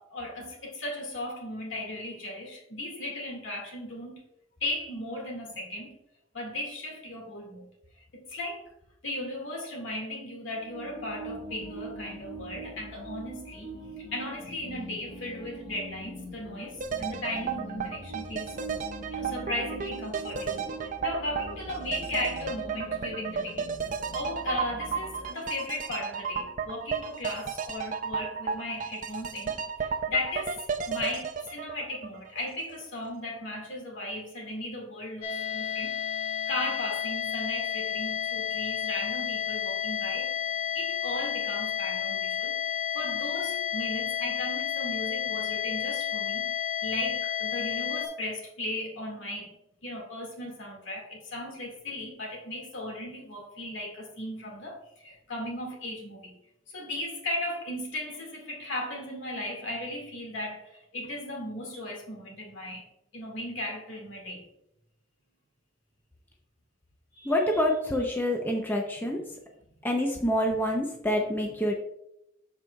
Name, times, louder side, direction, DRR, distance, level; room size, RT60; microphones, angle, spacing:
voice 1, 0.0-4.2 4.6-6.0 6.3-7.7 7.9-8.6 9.0-18.5 19.1-23.7 24.1-40.3 40.7-49.6 49.8-56.4 56.7-62.9 63.1-64.4 67.1-67.6 69.1-69.2 70.1-70.5, left 1 dB, 65° left, 0 dB, 2.0 m, -36 dB
sound 1, 10.5-25.2, right 1 dB, 30° left, 2.4 m, -43 dB
sound 2, 16.8-32.7 33.0-33.1, right 6 dB, 40° right, 0.5 m, -34 dB
sound 3, 35.2-48.1, left 10 dB, 90° left, 1.3 m, -31 dB
voice 2, 67.3-69.2 69.8-71.7, left 1 dB, 10° left, 0 dB, 0.6 m, -27 dB
13.0 x 4.6 x 2.3 m, 0.81 s
head